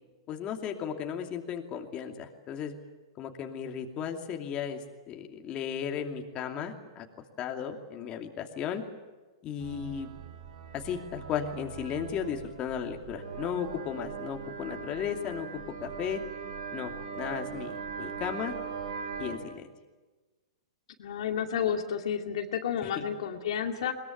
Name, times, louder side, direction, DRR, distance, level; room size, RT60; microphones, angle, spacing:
voice 1, 0.3-2.7 3.2-7.1 7.4-8.8 9.4-10.1 10.7-16.2 16.7-18.5 19.2-19.7 23.0-23.1, left 8 dB, 30° left, 3 dB, 2.7 m, -35 dB
sound 1, 9.6-19.4, right 6 dB, 85° right, 4.6 m, -40 dB
voice 2, 21.0-23.9, left 8 dB, 70° left, 4 dB, 2.5 m, -31 dB
22.0 x 21.0 x 9.3 m, 1.3 s
hypercardioid pair, 135°, 3 cm